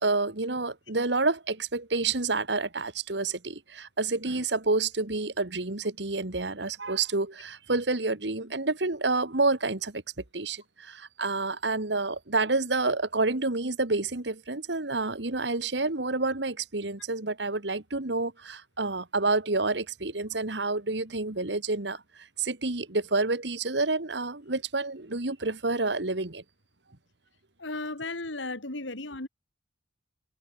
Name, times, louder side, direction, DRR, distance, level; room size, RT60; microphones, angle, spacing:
voice 1, 0.0-10.0 10.3-22.0 22.4-26.4, right 3 dB, 65° right, 1.9 m, -29 dB
voice 2, 27.6-29.3, left 2 dB, 85° left, 3.4 m, -35 dB
head